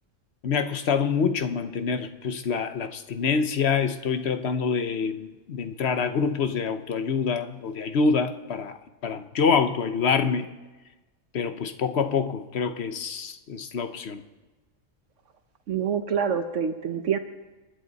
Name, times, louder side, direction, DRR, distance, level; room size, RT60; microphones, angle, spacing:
voice 1, 0.4-8.8 9.0-10.5 11.3-14.2, left 5 dB, 55° left, 9 dB, 1.0 m, -26 dB
voice 2, 15.7-17.2, right 7 dB, 65° right, 7 dB, 1.2 m, -26 dB
29.5 x 10.5 x 4.1 m, 1.2 s
omnidirectional pair, 1.4 m